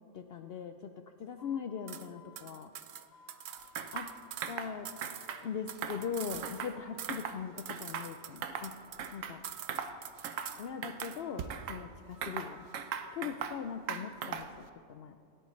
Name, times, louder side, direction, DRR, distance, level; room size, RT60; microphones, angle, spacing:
voice 1, 0.1-0.9 1.2-2.7 3.9-4.1 4.5-4.9 5.4-8.7 9.1-9.4 10.6-12.7 13.1-15.2, left 7 dB, 60° left, 7 dB, 0.7 m, -40 dB
sound 1, 1.4-3.8 4.1-5.2 5.5-6.5 6.8-7.8 8.2-9.2 9.5-10.7 11.2-13.3, left 2 dB, 85° left, 3.6 m, -59 dB
sound 2, 1.9-2.1 2.4-4.6 4.8-6.7 7.0-7.3 7.6-9.2 9.4-10.7 11.0-11.2, right 9 dB, 60° right, 0.5 m, -46 dB
sound 3, 3.8-4.1 4.4-4.7 5.0-5.4 5.8-6.8 7.1-7.4 7.7-8.7 9.0-9.4 9.7-9.9 10.2-10.5 10.8-11.8 12.2-13.6 13.9-14.6, right 7 dB, 85° right, 1.1 m, -39 dB
27.0 x 9.0 x 3.2 m, 2.4 s
omnidirectional pair, 1.3 m